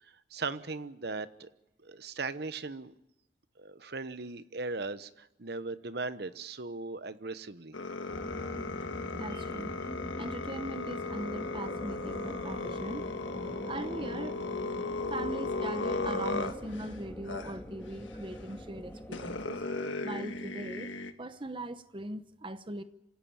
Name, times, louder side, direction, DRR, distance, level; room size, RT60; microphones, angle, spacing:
voice 1, 0.3-1.5 1.8-2.9 3.6-7.8 9.3-9.4, right 3 dB, 55° right, 13 dB, 1.0 m, -38 dB
sound 1, 7.7-16.9 17.3-17.5 18.5-18.6 19.1-21.1, left 3 dB, 85° left, 1.6 m, -36 dB
sound 2, 8.1-19.5, equal, 10° left, 2.1 m, -44 dB
voice 2, 9.1-9.7 10.2-13.1 13.7-14.4 15.1-19.6 20.0-20.9 21.2-22.8, right 1 dB, 25° right, 12 dB, 0.9 m, -40 dB
26.5 x 16.5 x 8.8 m, 0.89 s
head